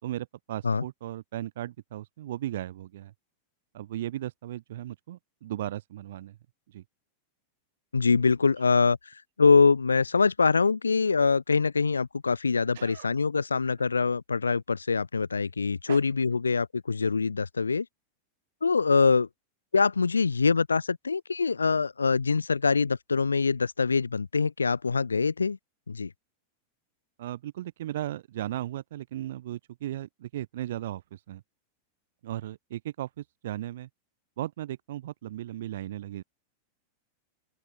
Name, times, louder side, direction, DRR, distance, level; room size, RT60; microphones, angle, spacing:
voice 1, 0.0-3.1 3.7-6.4 6.7-6.8 12.7-13.1 15.9-16.0 27.2-31.4 32.2-33.9 34.4-36.2, right 13 dB, 60° right, 5.7 m, -36 dB
voice 2, 7.9-9.0 9.4-17.9 18.6-19.3 19.7-25.6 25.9-26.1, left 4 dB, 75° left, 0.9 m, -24 dB
open air
figure-of-eight pair, 90°, 0 cm